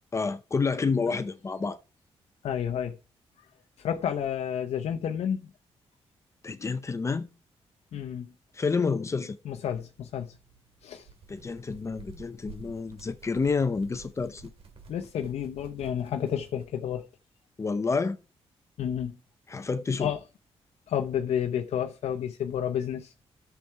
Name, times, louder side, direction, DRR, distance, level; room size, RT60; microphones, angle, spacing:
voice 1, 0.1-1.8 6.4-7.3 8.6-9.4 11.3-14.4 17.6-18.2 19.5-20.1, left 4 dB, 25° left, 0.7 m, -29 dB
voice 2, 2.4-3.0 3.8-5.5 7.9-8.3 9.4-10.4 10.8-11.1 14.9-17.1 18.8-19.2 20.0-20.2 20.9-23.1, left 9 dB, 80° left, 0.8 m, -30 dB
sound 1, 9.4-16.7, right 5 dB, 65° right, 2.3 m, -52 dB
10.5 x 7.1 x 4.7 m
wide cardioid pair, 135°, 11 cm